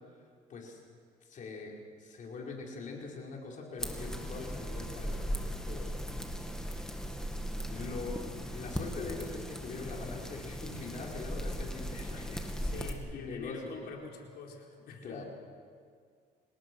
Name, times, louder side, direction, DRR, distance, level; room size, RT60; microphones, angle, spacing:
voice 1, 1.2-1.7 2.0-5.9 6.4-7.0 7.7-13.9 15.0-15.2, left 4 dB, 50° left, -1 dB, 5.3 m, -43 dB
sound 1, 3.8-12.9, equal, 5° left, 2.3 m, -38 dB
voice 2, 12.6-15.2, left 4 dB, 75° left, 0 dB, 4.3 m, -46 dB
27.0 x 19.5 x 6.4 m, 2.1 s
cardioid pair, 110°, 17 cm